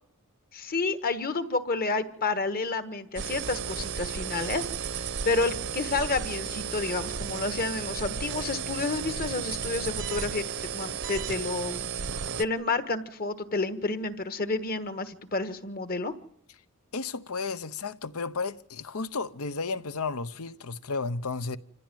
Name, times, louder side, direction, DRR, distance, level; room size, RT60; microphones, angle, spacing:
voice 1, 0.5-11.9 12.4-16.1, left 3 dB, 40° left, 1.5 m, -30 dB
sound 1, 3.2-12.5, right 7 dB, 55° right, 0.8 m, -34 dB
voice 2, 16.9-21.6, left 4 dB, 70° left, 0.9 m, -33 dB
27.0 x 15.5 x 9.3 m
head